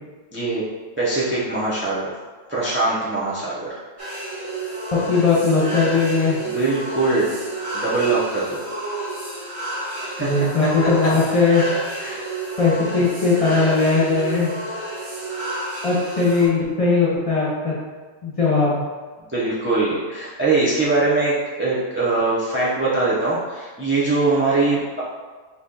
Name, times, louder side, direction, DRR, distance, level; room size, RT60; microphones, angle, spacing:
voice 1, 0.3-0.6 1.0-2.1 2.5-3.7 6.4-7.4 7.7-8.6 10.0-10.3 12.0-12.3 19.3-25.0, right 3 dB, 15° right, -7 dB, 0.6 m, -22 dB
sound 1, 4.0-16.5, right 1 dB, 30° right, 1.1 m, -30 dB
voice 2, 4.9-6.4 10.2-11.6 12.6-14.5 15.8-17.7 18.2-18.8, left 4 dB, 30° left, -7 dB, 1.2 m, -19 dB
4.1 x 3.0 x 3.8 m, 1.4 s
omnidirectional pair, 1.1 m